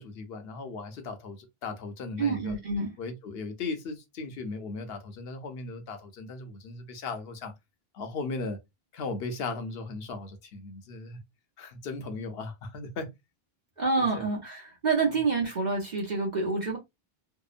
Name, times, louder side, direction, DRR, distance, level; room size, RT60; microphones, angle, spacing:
voice 1, 0.0-2.6 3.0-7.5 7.9-8.6 8.9-11.2 11.6-13.1 14.0-14.3, left 3 dB, 70° left, 0.9 m, -37 dB
voice 2, 2.2-2.9 13.8-16.8, right 4 dB, 50° right, 0.8 m, -27 dB
2.8 x 2.0 x 2.3 m
omnidirectional pair, 1.0 m